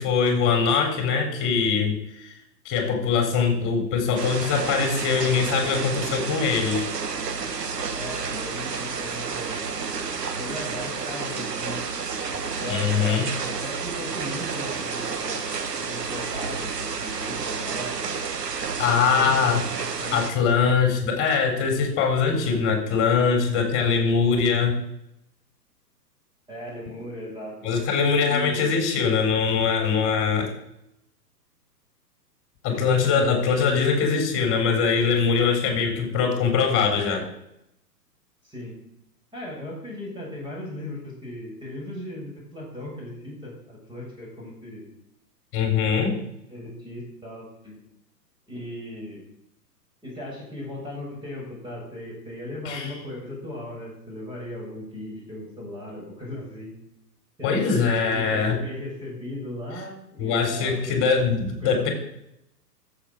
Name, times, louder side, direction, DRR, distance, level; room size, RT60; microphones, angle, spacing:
voice 1, 0.0-2.3 2.6-6.9 12.7-13.3 18.8-19.6 20.1-24.8 27.6-30.5 32.6-37.3 45.5-46.1 52.7-52.9 57.4-58.6 60.2-61.9, left 5 dB, 25° left, 4 dB, 4.0 m, -22 dB
sound 1, 4.2-20.3, right 5 dB, 75° right, 1.9 m, -30 dB
voice 2, 7.9-9.7 10.3-11.8 12.4-15.4 15.8-18.2 18.8-20.4 22.5-22.9 26.5-27.7 28.3-28.8 32.7-33.9 38.4-38.8 39.3-44.9 46.0-46.1 46.5-47.8 48.5-49.2 50.0-56.7 57.4-61.0 61.6-61.9, left 1 dB, 10° right, -4 dB, 6.8 m, -37 dB
15.0 x 7.5 x 6.5 m, 0.80 s
hypercardioid pair, 125°, 49 cm